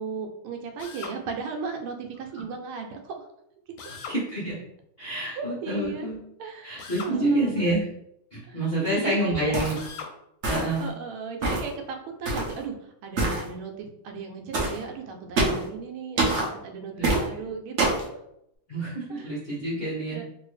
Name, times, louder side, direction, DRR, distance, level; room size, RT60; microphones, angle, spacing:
voice 1, 0.0-3.3 5.1-6.1 6.4-7.6 8.5-9.5 10.8-18.2 19.1-19.4 20.1-20.2, right 5 dB, 85° right, 3 dB, 1.5 m, -36 dB
Drill, 0.8-1.2 3.8-4.2 6.8-7.2 9.7-10.1, left 5 dB, 75° left, 1.2 m, -39 dB
voice 2, 4.1-4.5 5.0-6.2 6.6-7.9 8.3-9.8 10.5-10.8 17.0-17.1 18.7-20.2, right 1 dB, 55° left, -8 dB, 0.6 m, -27 dB
sound 1, 9.5-9.9 10.4-10.8 11.4-11.7 12.2-12.5 13.2-13.4 14.5-14.8 15.4-15.7 16.2-16.5 17.0-17.2 17.8-18.1, right 2 dB, 70° right, 0.6 m, -25 dB
3.3 x 2.7 x 3.1 m, 0.77 s
omnidirectional pair, 2.3 m